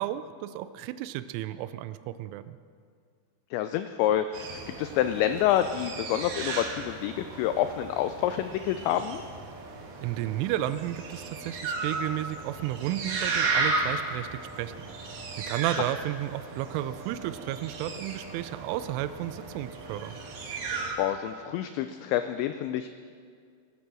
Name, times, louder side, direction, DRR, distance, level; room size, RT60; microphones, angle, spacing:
voice 1, 0.0-2.6 10.0-14.7 15.4-20.2, right 13 dB, 85° right, 12 dB, 3.0 m, -33 dB
voice 2, 3.5-9.2 21.0-22.9, left 11 dB, 85° left, 9 dB, 2.5 m, -28 dB
sound 1, 4.3-20.9, right 3 dB, 60° right, 3.0 m, -35 dB
20.0 x 9.7 x 6.3 m, 2.1 s
omnidirectional pair, 5.7 m